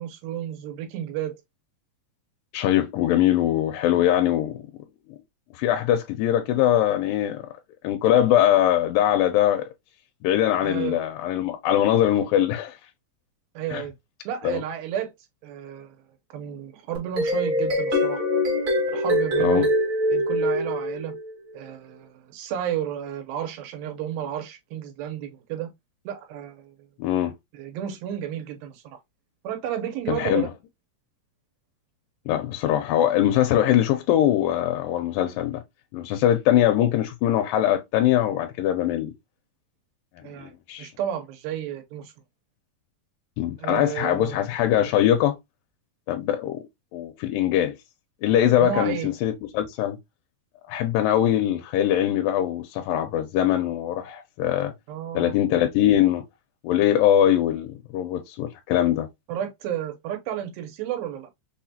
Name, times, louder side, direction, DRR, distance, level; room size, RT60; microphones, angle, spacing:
voice 1, 0.0-1.4 10.6-11.0 13.6-13.9 14.3-15.1 15.4-16.0 16.3-18.2 18.9-19.7 20.1-21.1 21.5-25.7 26.1-26.7 27.5-28.8 29.4-30.5 40.2-40.5 40.8-42.1 43.6-44.4 48.6-49.1 54.9-55.4 59.3-61.3, right 10 dB, 90° right, 2.6 m, -32 dB
voice 2, 2.5-4.6 5.1-5.2 5.6-7.5 7.8-9.7 10.2-12.8 13.7-13.8 14.4-14.6 19.4-19.7 27.0-27.3 30.1-30.5 32.3-35.6 35.9-39.1 40.4-40.9 43.4-45.4 46.1-46.6 46.9-47.8 48.2-50.0 50.7-54.7 55.2-56.2 56.6-59.1, left 11 dB, 80° left, 2.1 m, -22 dB
sound 1, 16.9-21.3, left 1 dB, 50° right, 0.9 m, -23 dB
5.6 x 2.2 x 2.7 m
omnidirectional pair, 4.1 m